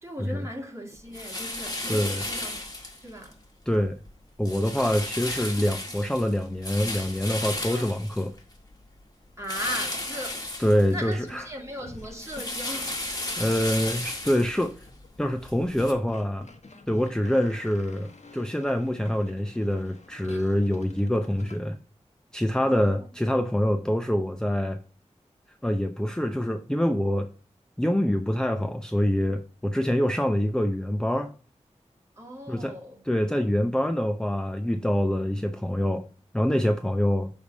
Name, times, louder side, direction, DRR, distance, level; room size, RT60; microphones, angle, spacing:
voice 1, 0.0-2.7 3.0-3.4 4.8-5.0 7.7-7.9 9.4-10.5 10.9-13.0 22.6-23.0 30.1-30.2 32.2-33.0, equal, 25° right, 2.3 m, -38 dB
sound 1, 1.1-3.3 3.7-4.1 4.4-8.7 9.4-11.3 11.6-15.9, left 1 dB, 30° left, 1.8 m, -34 dB
voice 2, 1.9-2.2 3.7-4.0 4.4-8.3 10.6-11.5 13.4-14.7 15.2-16.5 16.9-21.8 22.3-24.8 25.6-27.3 27.8-31.3 32.5-32.8 33.0-36.0 36.3-37.3, equal, 5° left, 0.6 m, -25 dB
sound 2, 11.3-11.5 11.8-21.6, left 2 dB, 65° left, 1.3 m, -49 dB
7.9 x 3.5 x 5.2 m
wide cardioid pair, 50°, 12 cm